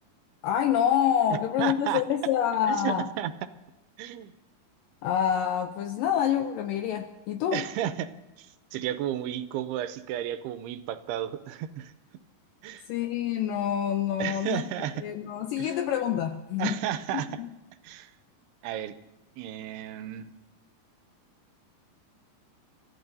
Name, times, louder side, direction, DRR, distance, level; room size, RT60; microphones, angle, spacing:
voice 1, 0.4-3.0 5.0-7.6 12.9-14.6 15.0-16.8 17.1-17.5, left 9 dB, 80° left, 6 dB, 2.0 m, -27 dB
voice 2, 1.3-2.0 2.7-3.5 4.0-4.3 7.5-8.1 8.4-11.9 12.6-12.9 14.2-15.1 15.6-15.8 16.6-17.4 17.8-18.1 18.6-18.9 19.4-20.3, right 11 dB, 85° right, 11 dB, 2.7 m, -33 dB
29.5 x 14.0 x 2.7 m, 1.0 s
omnidirectional pair, 4.5 m